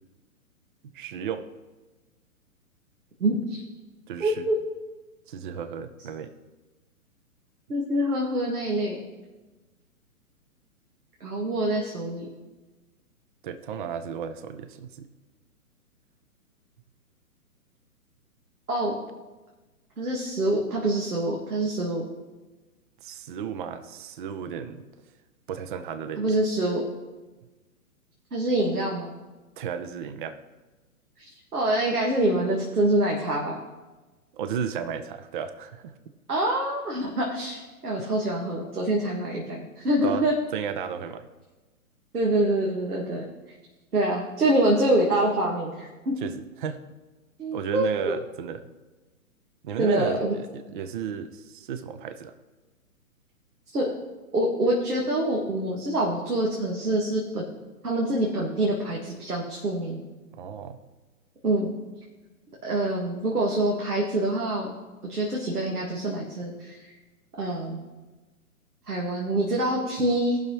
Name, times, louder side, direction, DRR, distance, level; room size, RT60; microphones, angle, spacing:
voice 1, 0.8-1.5 4.1-4.5 5.3-6.3 13.4-15.1 23.0-24.9 25.5-26.4 29.6-30.4 34.3-36.0 40.0-41.3 46.2-46.9 47.5-48.7 49.6-52.3 60.3-60.8, right 7 dB, 35° right, 10 dB, 0.6 m, -34 dB
voice 2, 3.2-3.6 4.2-4.6 7.7-9.0 11.2-12.3 18.7-19.0 20.0-22.0 26.2-26.8 28.3-29.1 31.5-33.6 36.3-40.3 42.1-43.2 43.9-46.1 47.4-48.1 49.8-50.3 53.7-53.9 54.3-57.4 57.8-60.1 61.4-61.7 62.6-64.7 65.1-66.9 67.4-67.8 68.9-70.4, right 1 dB, 85° right, -2 dB, 2.0 m, -25 dB
18.0 x 6.2 x 3.2 m, 1.2 s
hypercardioid pair, 130°, 44 cm